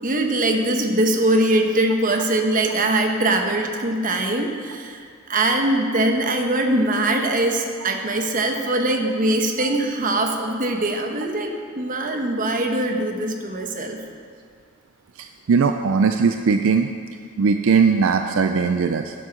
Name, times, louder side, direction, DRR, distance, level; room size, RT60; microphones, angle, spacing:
voice 1, 0.0-14.0, right 1 dB, 40° right, 3 dB, 1.0 m, -22 dB
voice 2, 15.2-16.9 17.4-19.1, right 5 dB, 65° right, 6 dB, 0.4 m, -19 dB
10.0 x 7.5 x 6.5 m, 2.2 s
head